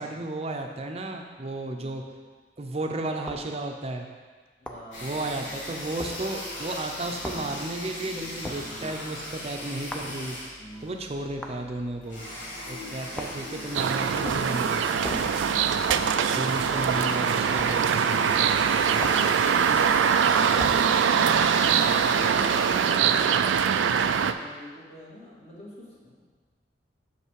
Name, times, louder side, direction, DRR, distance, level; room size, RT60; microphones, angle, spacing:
voice 1, 0.0-2.0 2.6-4.1 5.0-10.4 10.8-12.3 12.7-15.0 16.3-18.2, right 2 dB, 35° right, 3 dB, 0.6 m, -33 dB
sound 1, 3.3-3.5 4.7-4.9 6.0-6.2 7.2-7.5 8.4-8.7 9.9-10.1 11.4-11.6 13.2-13.5 14.2-14.5 15.0-15.4 15.9-16.2 17.6-17.8 19.0-19.3 20.6-20.9, equal, 5° left, 0.5 m, -36 dB
voice 2, 4.6-5.6 8.6-9.0 10.6-10.9 16.0-17.3 18.2-21.6 22.0-26.2, equal, 35° left, -6 dB, 1.9 m, -46 dB
sound 2, 4.9-22.9, left 1 dB, 85° left, 2.1 m, -38 dB
sound 3, 13.7-24.3, right 7 dB, 85° right, 0.3 m, -23 dB
6.6 x 5.7 x 4.7 m, 1.4 s
head